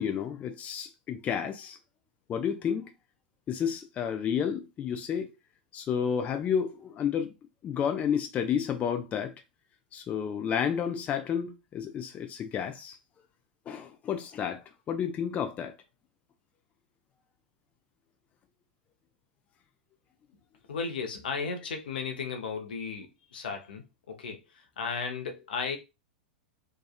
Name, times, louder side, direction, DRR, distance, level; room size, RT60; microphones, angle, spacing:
voice 1, 0.0-1.8 2.3-2.9 3.5-5.3 5.7-7.3 7.6-9.3 9.9-13.0 13.7-15.8, left 8 dB, 30° left, 0.4 m, -31 dB
voice 2, 20.7-24.4 24.8-25.8, left 5 dB, 75° left, 0.6 m, -35 dB
2.8 x 2.3 x 2.3 m
hypercardioid pair, 100°, 5 cm